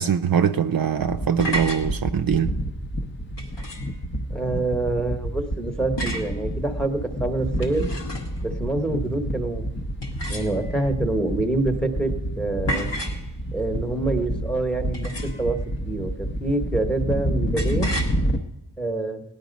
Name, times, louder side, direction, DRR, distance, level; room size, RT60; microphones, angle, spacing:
voice 1, 0.0-2.5, right 8 dB, 55° right, 0.5 m, -22 dB
sound 1, 1.0-18.4, equal, 30° left, 0.7 m, -29 dB
sound 2, 1.4-1.9 3.4-4.0 6.0-6.4 7.4-8.4 10.0-10.8 12.7-13.2 14.9-15.5 17.6-18.1, equal, 85° left, 1.8 m, -31 dB
voice 2, 4.3-7.9 8.4-9.7 10.3-12.9 13.5-15.6 15.8-17.9 18.8-19.2, right 2 dB, ahead, 1.0 m, -26 dB
17.5 x 11.0 x 5.2 m
wide cardioid pair, 85°, 41 cm